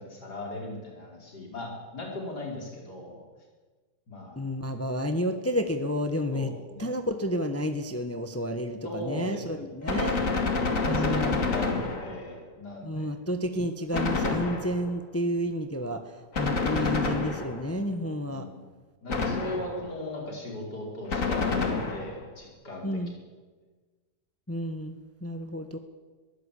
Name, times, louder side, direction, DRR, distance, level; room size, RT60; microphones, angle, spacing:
voice 1, 0.0-3.3 4.1-4.5 6.3-6.5 6.8-6.9 8.8-9.6 10.6-13.1 18.3-18.6 19.0-23.0, left 1 dB, 70° left, 0 dB, 5.3 m, -38 dB
voice 2, 4.3-6.5 6.8-10.2 10.9-11.5 12.8-18.5 22.8-23.1 24.5-25.8, equal, 10° left, 7 dB, 1.2 m, -30 dB
Gunshot gunfire, 9.9-12.4 13.9-15.0 16.3-17.8 19.1-19.9 21.1-22.2, left 4 dB, 50° left, 2.6 m, -28 dB
22.0 x 16.0 x 8.5 m, 1.3 s
omnidirectional pair, 1.9 m